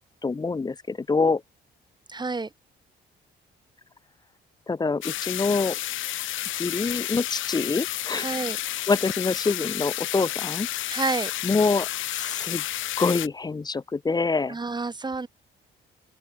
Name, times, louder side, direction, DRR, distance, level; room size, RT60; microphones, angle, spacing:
voice 1, 0.2-1.4 4.7-5.8 6.6-8.3 8.9-10.7 11.4-11.9 12.2-12.7 13.0-14.6, left 4 dB, 20° left, 0.6 m, -25 dB
voice 2, 2.1-2.5 8.2-8.6 10.9-11.3 14.5-15.3, right 3 dB, 20° right, 1.9 m, -29 dB
sound 1, 5.0-13.3, left 14 dB, 80° left, 1.6 m, -31 dB
open air
cardioid pair, 90°, 20 cm